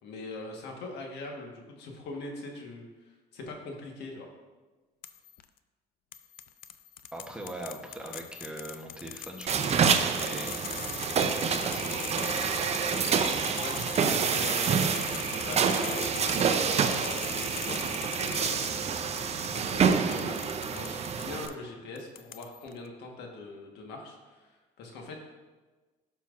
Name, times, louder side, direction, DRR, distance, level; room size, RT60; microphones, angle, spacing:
voice 1, 0.0-4.3 13.6-20.3 20.6-25.2, left 2 dB, 80° left, 1 dB, 1.4 m, -42 dB
sound 1, 5.0-5.4 6.1-21.5 22.0-22.7, left 10 dB, 60° left, 0.4 m, -41 dB
voice 2, 7.1-10.6 11.1-12.3 14.1-14.2, right 1 dB, 5° right, 0 dB, 1.0 m, -41 dB
sound 2, 9.5-21.5, right 6 dB, 40° right, 0.6 m, -28 dB
12.0 x 5.7 x 2.5 m, 1.3 s
cardioid pair, 110°, 17 cm